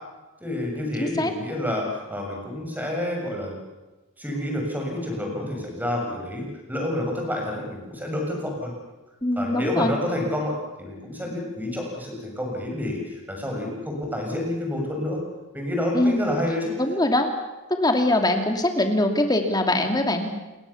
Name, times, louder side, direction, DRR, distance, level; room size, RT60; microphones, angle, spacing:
voice 1, 0.4-3.6 4.2-8.7 9.4-15.2 15.5-16.7, left 1 dB, 10° right, 0 dB, 7.3 m, -29 dB
voice 2, 1.0-1.3 9.2-9.9 15.9-16.3 16.8-17.3 17.7-20.3, left 1 dB, 20° left, 4 dB, 2.7 m, -22 dB
30.0 x 21.5 x 7.2 m, 1.1 s
head